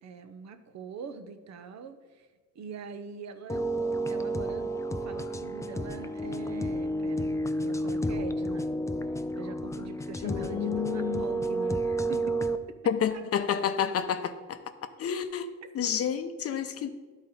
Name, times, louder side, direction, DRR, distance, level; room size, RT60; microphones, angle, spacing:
voice 1, 0.0-2.3 2.6-3.7 4.1-4.7 5.0-8.7 9.3-12.8 13.1-13.3 15.6-15.7, right 6 dB, 60° right, 9 dB, 0.7 m, -43 dB
sound 1, 3.5-12.6, right 1 dB, 10° left, 0.3 m, -31 dB
voice 2, 10.2-11.3 12.9-14.6 15.0-16.9, left 8 dB, 50° left, 10 dB, 0.6 m, -30 dB
11.0 x 4.0 x 4.1 m, 1.4 s
cardioid pair, 90°, 30 cm